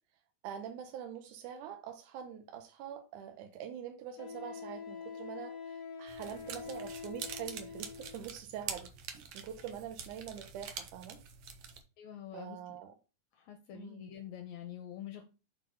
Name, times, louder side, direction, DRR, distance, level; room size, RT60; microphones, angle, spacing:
voice 1, 0.4-8.9 9.3-11.2 12.3-12.9 13.7-14.1, right 9 dB, 85° right, 2.3 m, -44 dB
Wind instrument woodwind instrument, 2.9-3.0 4.2-8.2, left 6 dB, 50° left, 2.2 m, -45 dB
sound 1, 6.1-11.8, right 7 dB, 65° right, 1.5 m, -45 dB
voice 2, 12.0-12.8 13.3-15.2, left 10 dB, 75° left, 1.9 m, -46 dB
6.5 x 3.8 x 5.2 m
omnidirectional pair, 3.6 m